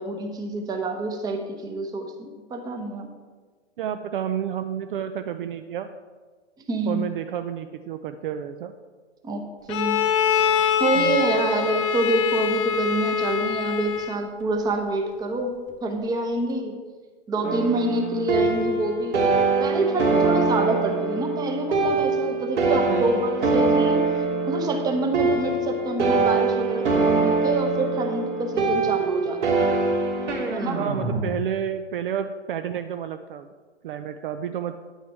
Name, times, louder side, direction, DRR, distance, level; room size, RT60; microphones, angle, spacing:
voice 1, 0.0-3.1 6.7-7.0 9.2-9.4 9.7-10.0 10.8-15.5 15.8-16.8 17.3-19.2 19.6-24.1 24.5-29.7 30.5-30.8, right 2 dB, 10° right, 3 dB, 0.9 m, -27 dB
voice 2, 3.8-5.9 6.9-8.7 10.9-11.2 22.9-23.2 30.7-33.5 33.8-34.8, right 9 dB, 50° right, 9 dB, 0.5 m, -30 dB
Bowed string instrument, 9.7-14.3, left 8 dB, 30° left, 0.5 m, -24 dB
sound 1, 17.4-31.2, right 3 dB, 85° right, 2.6 m, -23 dB
9.2 x 9.1 x 4.6 m, 1.4 s
hypercardioid pair, 140°, 35 cm